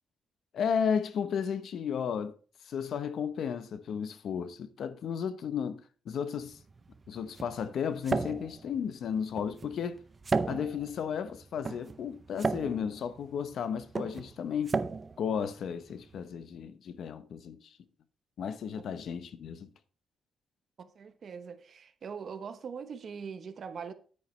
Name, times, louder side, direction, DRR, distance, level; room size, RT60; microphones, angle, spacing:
voice 1, 0.5-2.3 2.6-6.6 7.1-10.0 10.4-14.8 15.2-17.8 18.4-19.7, left 7 dB, 60° left, 0.8 m, -34 dB
sound 1, 6.4-16.2, right 4 dB, 25° right, 0.5 m, -36 dB
voice 2, 20.8-23.9, right 6 dB, 45° right, 1.0 m, -42 dB
9.8 x 9.2 x 3.2 m
cardioid pair, 165°, 0 cm